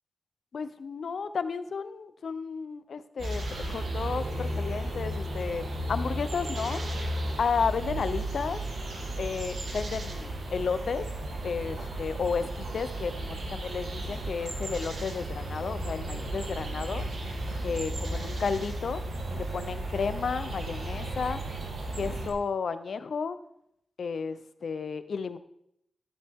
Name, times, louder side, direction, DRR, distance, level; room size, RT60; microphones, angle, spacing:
voice 1, 0.5-6.8 7.4-8.6 9.2-11.1 11.4-17.0 17.6-19.0 19.3-21.4 21.9-23.4 24.0-25.4, left 5 dB, 70° left, 12 dB, 0.7 m, -32 dB
sound 1, 3.2-22.3, right 1 dB, 85° right, 3.1 m, -34 dB
13.5 x 10.0 x 3.7 m, 0.75 s
wide cardioid pair, 125°, 0 cm